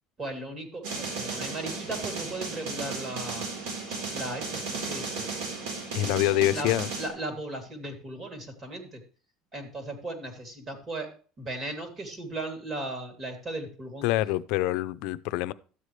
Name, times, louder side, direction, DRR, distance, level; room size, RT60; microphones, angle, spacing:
voice 1, 0.2-3.4 4.1-5.2 6.5-6.7 7.0-9.0 9.5-11.1 11.4-14.1, right 2 dB, 30° right, 2.9 m, -36 dB
sound 1, 0.8-7.1, right 4 dB, 85° right, 3.8 m, -35 dB
voice 2, 5.9-6.9 14.0-15.5, left 15 dB, 75° left, 0.5 m, -26 dB
13.0 x 8.2 x 3.3 m
cardioid pair, 130°, 0 cm